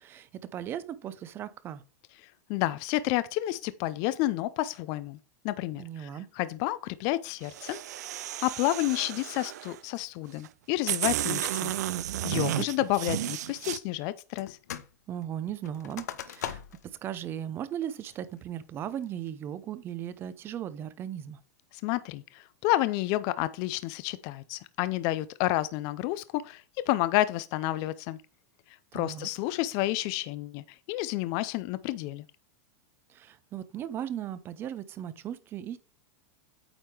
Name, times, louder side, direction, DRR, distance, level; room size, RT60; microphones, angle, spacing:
voice 1, 0.0-1.8 5.8-6.3 15.1-16.6 17.0-21.4 28.9-29.3 33.1-35.8, right 10 dB, 25° right, 0.6 m, -37 dB
voice 2, 2.5-5.2 5.4-6.1 6.4-7.8 8.4-11.7 12.2-14.6 21.8-28.2 28.9-32.2, left 16 dB, 45° left, 0.4 m, -30 dB
sound 1, 7.4-9.8 10.4-10.5 10.9-13.8, right 13 dB, 85° right, 0.4 m, -32 dB
sound 2, 14.4-14.9 15.2-16.9 17.4-17.5 18.0-18.4 18.9-19.3, left 10 dB, 90° left, 0.7 m, -40 dB
8.9 x 3.6 x 4.5 m
supercardioid pair, 145°, 9 cm